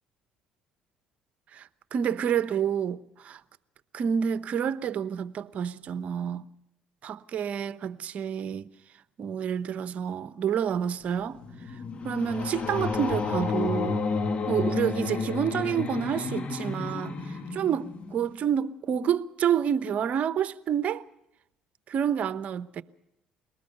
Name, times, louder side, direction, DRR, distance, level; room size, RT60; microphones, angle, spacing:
voice 1, 1.5-3.4 3.9-6.5 7.0-8.7 9.2-11.4 12.0-14.0 14.5-21.0 21.9-22.8, right 8 dB, 55° right, 0.9 m, -29 dB
sound 1, 11.1-18.4, left 4 dB, 45° left, 2.0 m, -31 dB
22.5 x 19.0 x 6.9 m
hypercardioid pair, 65°, 3 cm